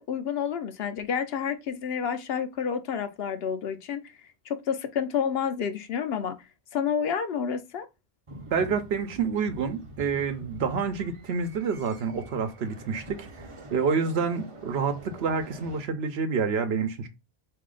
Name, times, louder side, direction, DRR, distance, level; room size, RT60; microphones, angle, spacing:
voice 1, 0.0-4.1 4.5-6.4 6.7-7.9, left 7 dB, 70° left, 0.8 m, -29 dB
sound 1, 8.3-15.8, right 1 dB, 35° right, 0.6 m, -46 dB
voice 2, 8.5-13.3 13.7-17.1, right 5 dB, 75° right, 0.9 m, -28 dB
4.1 x 2.7 x 3.7 m
omnidirectional pair, 1.1 m